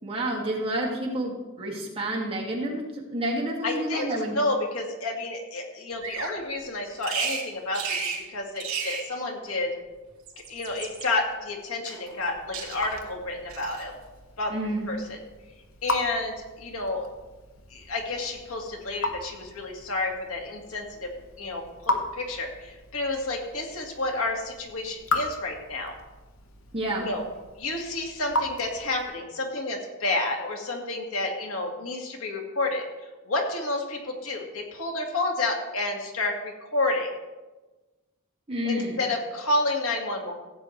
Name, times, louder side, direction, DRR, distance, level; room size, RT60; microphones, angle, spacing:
voice 1, 0.0-4.4 14.5-14.9 26.7-27.1 38.5-39.0, right 1 dB, 25° right, -2 dB, 2.3 m, -29 dB
voice 2, 3.6-4.1 4.3-9.7 10.5-13.9 14.4-14.5 14.9-15.2 15.8-17.1 17.7-21.1 21.4-25.9 27.0-27.2 27.6-32.8 33.3-37.1 38.6-40.3, left 2 dB, 85° left, 1 dB, 2.0 m, -30 dB
Bird vocalization bird call bird song, 6.0-6.4 7.0-7.5 7.7-8.2 8.6-9.1 10.1-11.1 11.8-12.3 12.5-13.0 13.5-13.9, right 6 dB, 70° right, 3.2 m, -33 dB
Raindrop / Drip, 12.1-29.3, left 2 dB, 70° left, 1.3 m, -36 dB
15.5 x 8.6 x 3.2 m, 1.2 s
head